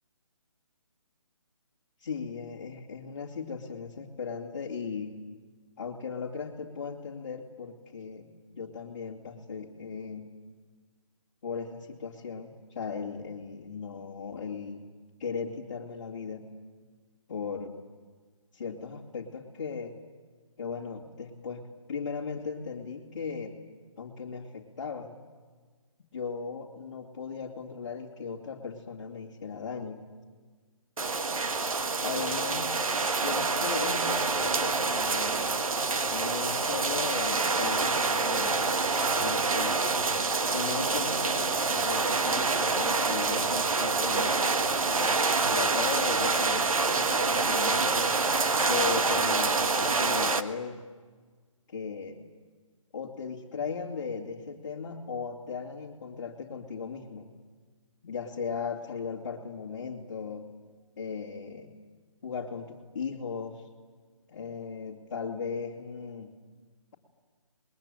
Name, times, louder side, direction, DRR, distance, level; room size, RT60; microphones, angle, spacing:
voice 1, 2.0-5.2 5.8-10.3 11.4-14.8 15.2-16.5 17.3-17.7 18.5-19.9 20.6-23.6 24.0-25.2 26.1-30.0 32.0-32.7 33.2-35.4 36.1-38.6 39.2-39.8 40.5-44.4 44.8-45.2 45.5-48.1 48.6-50.8 51.7-52.2 52.9-57.3 58.0-60.5 61.0-61.7 62.2-63.6 64.3-66.3, left 5 dB, 30° left, -7 dB, 2.5 m, -37 dB
sound 1, 31.0-50.4, right 4 dB, 85° right, 1.7 m, -27 dB
29.0 x 21.0 x 9.0 m, 1.5 s
hypercardioid pair, 175°, 17 cm